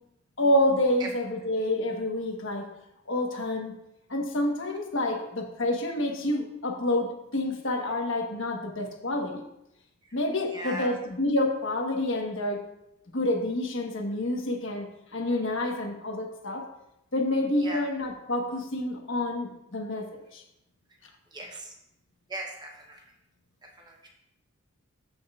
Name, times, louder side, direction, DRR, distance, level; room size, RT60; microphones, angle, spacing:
voice 1, 0.4-2.7 3.1-3.7 4.1-9.5 10.1-12.6 13.1-16.6 17.1-20.4, left 1 dB, 60° left, 1 dB, 1.3 m, -28 dB
voice 2, 10.5-10.9 17.6-17.8 21.3-21.7 22.3-23.0 23.6-24.1, right 1 dB, 20° right, 1 dB, 0.9 m, -38 dB
14.0 x 5.5 x 2.5 m, 0.85 s
head